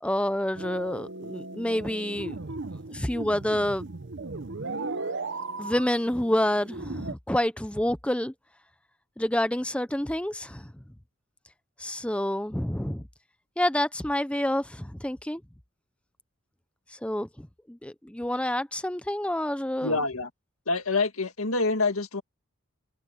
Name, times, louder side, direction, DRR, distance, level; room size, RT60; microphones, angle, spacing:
voice 1, 0.0-2.4 2.9-3.9 5.6-8.3 9.2-10.7 11.8-13.0 13.6-15.4 16.9-20.0, left 1 dB, 5° left, 0.6 m, -28 dB
sound 1, 0.5-7.1, right 3 dB, 55° right, 0.8 m, -37 dB
voice 2, 19.8-20.3 20.7-22.2, left 3 dB, 70° left, 2.1 m, -26 dB
head